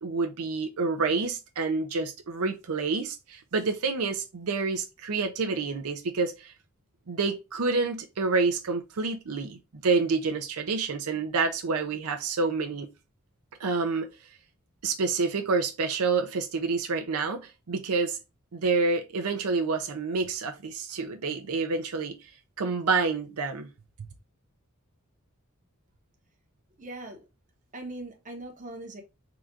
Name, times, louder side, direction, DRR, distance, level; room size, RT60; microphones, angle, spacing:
voice 1, 0.0-6.5 7.1-12.9 13.6-14.1 14.8-18.2 18.5-22.1 22.6-23.7, right 4 dB, 80° right, 0.6 m, -28 dB
voice 2, 26.8-27.3 27.7-29.0, right 2 dB, 35° right, 1.0 m, -40 dB
3.9 x 2.5 x 4.4 m
head